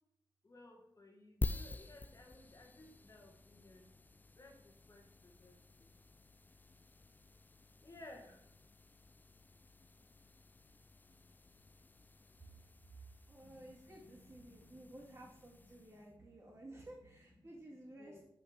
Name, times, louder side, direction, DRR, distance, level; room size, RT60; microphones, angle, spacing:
voice 1, 0.4-3.9 4.3-5.9 7.8-8.4 13.4-15.3 15.6-16.9 17.9-18.2, left 2 dB, 40° left, 2 dB, 1.5 m, -59 dB
sound 1, 1.4-16.1, left 2 dB, 20° left, 0.3 m, -49 dB
voice 2, 13.3-18.2, right 1 dB, 35° right, -7 dB, 2.0 m, -54 dB
5.8 x 5.5 x 3.4 m, 0.76 s
cardioid pair, 50°, 9 cm